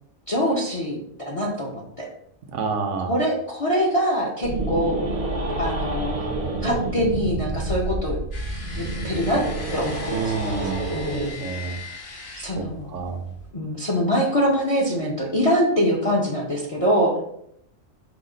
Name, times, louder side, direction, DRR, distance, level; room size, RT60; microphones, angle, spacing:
voice 1, 0.3-1.0 1.2-2.1 3.1-5.1 5.6-6.1 6.6-8.2 8.7-9.4 9.7-11.7 12.4-12.9 13.5-17.1, equal, 35° left, -4 dB, 0.6 m, -24 dB
voice 2, 2.5-3.2 10.1-10.9 11.4-11.8 12.9-13.2, right 5 dB, 70° right, 6 dB, 1.0 m, -28 dB
sound 1, 4.4-11.3, right 2 dB, 40° right, 0.7 m, -28 dB
sound 2, 8.3-13.5, left 4 dB, 50° left, 1.1 m, -40 dB
4.9 x 2.4 x 3.7 m, 0.72 s
omnidirectional pair, 1.4 m